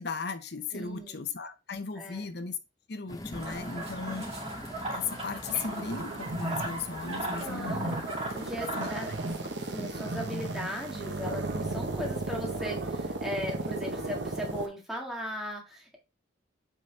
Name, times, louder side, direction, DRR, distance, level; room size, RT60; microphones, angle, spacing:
voice 1, 0.0-2.6 2.9-4.3 4.9-8.0 8.8-8.9 9.8-9.9, left 5 dB, 55° left, 0.8 m, -36 dB
voice 2, 0.7-1.1 2.0-2.3 4.1-4.3 7.4-8.0 8.3-9.3 9.6-16.0, equal, ahead, 1.8 m, -38 dB
sound 1, 3.1-13.1, left 1 dB, 20° left, 0.7 m, -47 dB
sound 2, 3.3-9.3, right 1 dB, 30° right, 2.3 m, -38 dB
sound 3, 5.4-14.7, right 2 dB, 65° right, 1.0 m, -35 dB
8.5 x 4.1 x 3.3 m
head